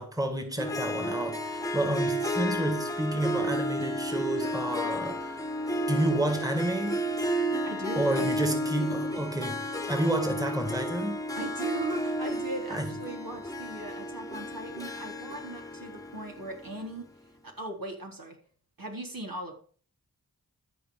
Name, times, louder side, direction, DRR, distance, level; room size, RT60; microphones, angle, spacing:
voice 1, 0.0-5.4 5.9-7.0 8.0-11.2 12.7-12.9, right 1 dB, 10° right, 2.2 m, -30 dB
Harp, 0.6-17.1, equal, 10° left, 1.4 m, -32 dB
voice 2, 7.6-8.3 11.3-18.4 18.8-19.5, right 2 dB, 65° right, 4.0 m, -38 dB
13.0 x 4.9 x 7.8 m
cardioid pair, 45°, 37 cm